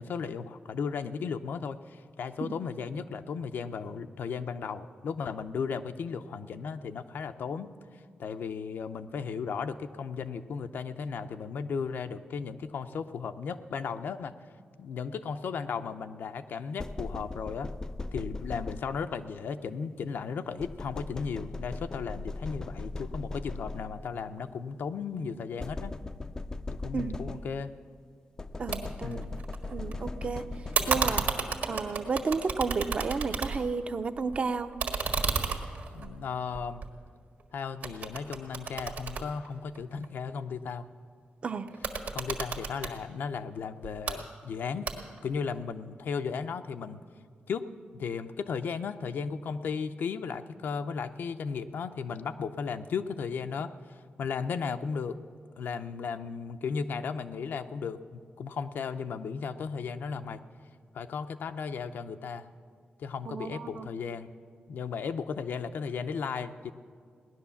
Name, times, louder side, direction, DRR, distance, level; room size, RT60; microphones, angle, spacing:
voice 1, 0.0-14.3 14.8-17.7 18.1-26.0 26.7-27.7 29.0-29.4 35.9-36.9 37.5-40.9 42.1-44.9 45.2-47.0 47.5-55.2 55.6-60.4 60.9-62.5 63.0-64.3 64.7-66.7, left 6 dB, 80° left, 9 dB, 0.6 m, -35 dB
sound 1, 16.8-19.3 20.6-24.2 25.6-27.8 28.4-31.5, left 2 dB, 20° left, 0.3 m, -39 dB
voice 2, 28.6-29.2 29.7-30.4 30.9-34.7 41.4-41.7 63.3-63.9, right 4 dB, 40° right, 9 dB, 0.6 m, -32 dB
sound 2, 28.7-28.8 29.1-29.9 30.7-33.8 34.2-37.4 37.8-40.1 41.7-42.9 43.8-44.2 44.9-45.3, right 5 dB, 65° right, 1.6 m, -32 dB
17.5 x 11.0 x 7.0 m, 2.1 s
wide cardioid pair, 165°, 3 cm